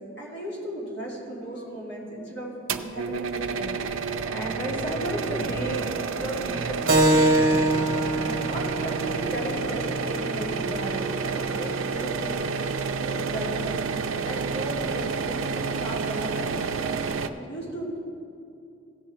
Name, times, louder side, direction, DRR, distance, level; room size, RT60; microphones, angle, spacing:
voice 1, 0.2-2.5 2.8-3.8 4.3-7.6 8.2-12.3 13.0-13.8 14.2-16.7 17.2-17.9, right 1 dB, 55° left, -5 dB, 2.5 m, -35 dB
sound 1, 2.7-17.3, right 5 dB, 70° right, 0.5 m, -29 dB
Keyboard (musical), 6.9-12.0, right 1 dB, 45° right, 0.8 m, -25 dB
16.0 x 6.5 x 4.4 m, 2.6 s
head